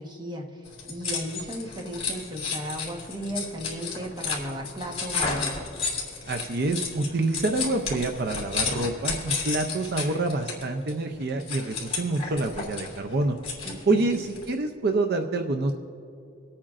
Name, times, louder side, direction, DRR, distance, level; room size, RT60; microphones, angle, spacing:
voice 1, 0.0-5.7 13.6-14.2, equal, 25° right, 1 dB, 1.2 m, -35 dB
sound 1, 0.6-14.5, left 5 dB, 30° left, 2.5 m, -33 dB
voice 2, 6.3-13.4 13.9-15.7, right 2 dB, 55° right, 5 dB, 0.6 m, -27 dB
25.0 x 8.7 x 2.5 m, 2.6 s
head